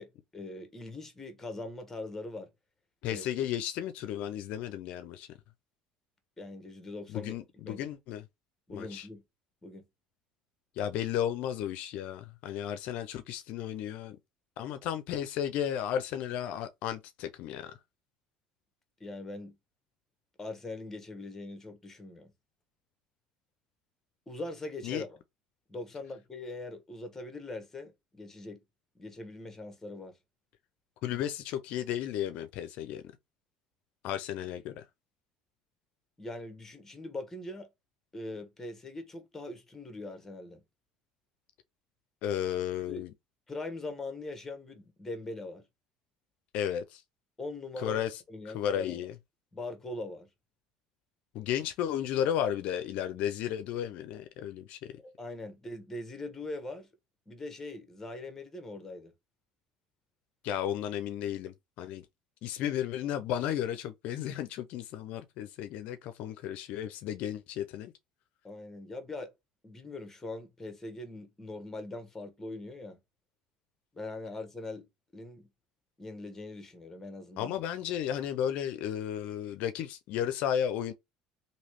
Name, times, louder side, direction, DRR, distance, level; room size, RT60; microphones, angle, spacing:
voice 1, 0.0-2.5 3.1-3.3 6.4-7.3 7.7-7.9 8.7-9.2 9.6-9.8 19.0-19.5 20.4-22.3 24.3-25.2 25.7-28.6 28.9-30.2 36.2-37.7 38.1-40.6 42.9-43.0 43.5-45.6 47.4-48.0 48.3-49.1 49.5-50.3 55.0-56.9 57.3-59.1 68.4-69.3 69.6-73.0 73.9-74.8 75.1-75.5 76.0-77.6, left 2 dB, 15° left, 1.1 m, -41 dB
voice 2, 3.0-5.3 7.1-8.2 8.7-9.1 10.8-14.2 14.6-17.8 24.8-25.0 31.0-33.0 34.0-34.8 42.2-43.1 46.5-47.0 47.8-49.1 51.3-55.0 60.4-62.0 62.4-67.9 77.4-80.9, left 10 dB, 65° left, 0.5 m, -34 dB
3.1 x 2.7 x 2.9 m
supercardioid pair, 105°, 2 cm